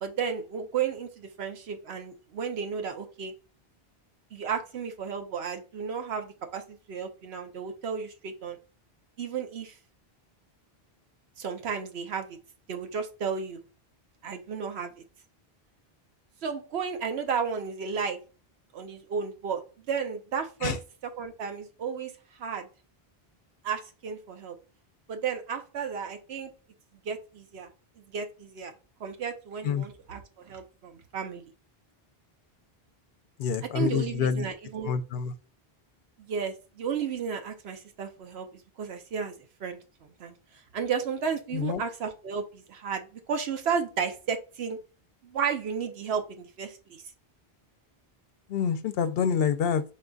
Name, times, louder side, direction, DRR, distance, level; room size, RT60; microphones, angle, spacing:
voice 1, 0.0-3.3 4.3-8.6 9.2-9.8 11.4-12.4 12.7-13.6 14.2-15.0 16.4-18.2 18.7-19.6 19.9-20.8 21.0-22.1 22.4-22.7 23.6-24.6 25.1-26.5 27.0-27.7 28.0-28.7 29.0-31.4 33.6-34.9 36.2-39.3 39.6-40.3 40.7-44.8 45.2-47.0, right 6 dB, 85° right, 1.0 m, -33 dB
voice 2, 33.4-34.5 34.8-35.3 41.5-41.8 48.5-49.8, left 7 dB, 70° left, 0.8 m, -27 dB
4.3 x 3.8 x 2.3 m
omnidirectional pair, 1.0 m